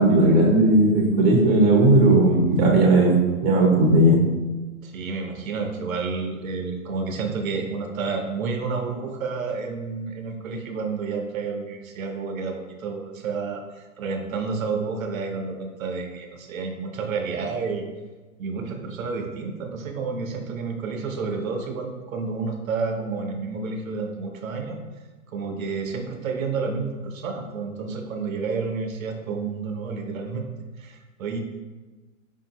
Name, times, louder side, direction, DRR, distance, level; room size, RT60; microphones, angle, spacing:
voice 1, 0.0-4.2, right 2 dB, 30° right, 0 dB, 0.7 m, -17 dB
voice 2, 4.8-17.9 18.4-24.8 25.3-30.4 30.8-31.4, right 4 dB, 75° right, 4 dB, 0.7 m, -30 dB
4.9 x 2.7 x 2.8 m, 1.3 s
hypercardioid pair, 150°, 42 cm